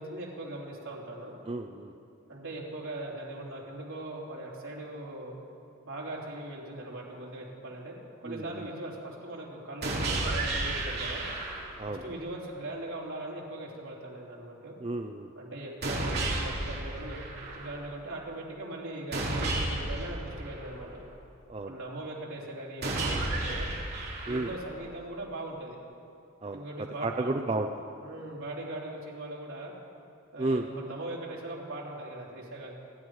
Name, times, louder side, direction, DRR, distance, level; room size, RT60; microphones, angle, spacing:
voice 1, 0.0-1.3 2.3-5.3 5.8-8.0 8.2-11.2 11.9-14.7 15.4-21.0 21.7-23.7 24.3-25.8 26.5-27.4 28.0-29.7 30.3-32.8, right 1 dB, 75° right, -3 dB, 3.4 m, -40 dB
voice 2, 1.5-1.9 8.2-8.7 11.8-12.1 14.8-15.3 21.5-21.7 24.3-24.5 26.4-27.8 30.4-30.7, right 2 dB, 30° right, 5 dB, 0.5 m, -32 dB
sound 1, 9.8-11.8 15.8-17.8 19.1-21.1 22.8-24.8, right 2 dB, 50° right, 2.8 m, -32 dB
27.0 x 11.0 x 4.8 m, 2.6 s
head